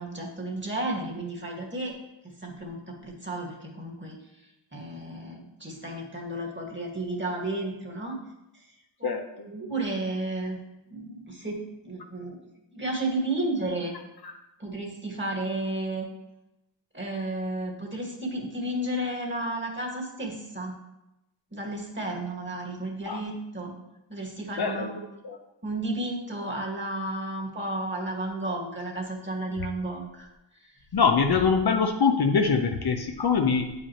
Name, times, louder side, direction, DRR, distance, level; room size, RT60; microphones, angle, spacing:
voice 1, 0.0-1.9 2.4-4.2 4.7-8.2 9.0-9.1 9.5-10.6 10.9-12.4 12.7-14.0 14.6-16.1 16.9-20.7 21.5-23.7 24.1-25.0 25.6-30.3, right 1 dB, 25° right, -1 dB, 1.9 m, -32 dB
voice 2, 9.0-9.5 14.2-14.3 23.1-23.2 24.5-25.4 30.9-33.7, left 5 dB, 55° left, 4 dB, 0.7 m, -24 dB
8.3 x 5.1 x 3.0 m, 0.90 s
cardioid pair, 50°, 47 cm